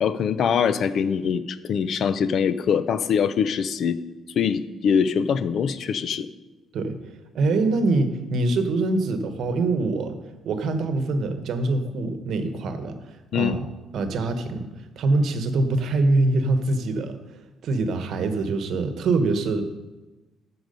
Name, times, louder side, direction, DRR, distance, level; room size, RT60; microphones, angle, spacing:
voice 1, 0.0-4.0 4.4-6.3 13.3-13.6, left 7 dB, 55° left, 14 dB, 0.5 m, -23 dB
voice 2, 7.3-10.2 10.4-13.6 13.9-14.7 15.0-17.2 17.6-19.6, right 2 dB, 65° right, 8 dB, 1.0 m, -24 dB
13.0 x 4.7 x 5.3 m, 1.2 s
cardioid pair, 125°, 0 cm